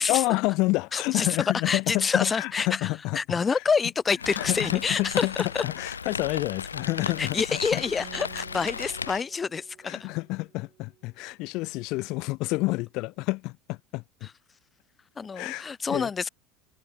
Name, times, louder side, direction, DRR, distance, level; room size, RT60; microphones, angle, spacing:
voice 1, 0.1-3.2 3.5-3.6 4.4-7.8 9.8-14.3 15.3-16.1, left 23 dB, 55° left, 1.2 m, -29 dB
voice 2, 0.9-1.3 1.7-2.9 3.1-5.3 5.5-5.6 7.2-10.1 15.2-16.3, left 5 dB, 25° left, 0.9 m, -27 dB
Rain, 4.2-9.2, left 6 dB, 80° left, 1.2 m, -35 dB
Acoustic guitar, 8.0-11.7, right 11 dB, 40° right, 3.0 m, -52 dB
figure-of-eight pair, 70°, 0 cm